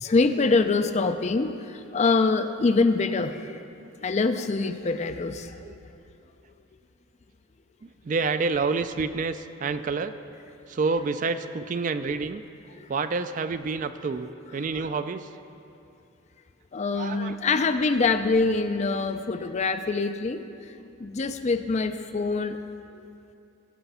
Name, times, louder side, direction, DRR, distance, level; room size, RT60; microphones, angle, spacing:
voice 1, 0.0-3.6 4.0-5.5 16.7-20.5 21.0-22.6, left 3 dB, 35° left, 9 dB, 0.4 m, -24 dB
voice 2, 7.8-10.1 10.7-12.4 12.9-15.3 16.9-17.4, right 4 dB, 40° right, 11 dB, 0.3 m, -28 dB
17.0 x 5.8 x 5.5 m, 2.7 s
head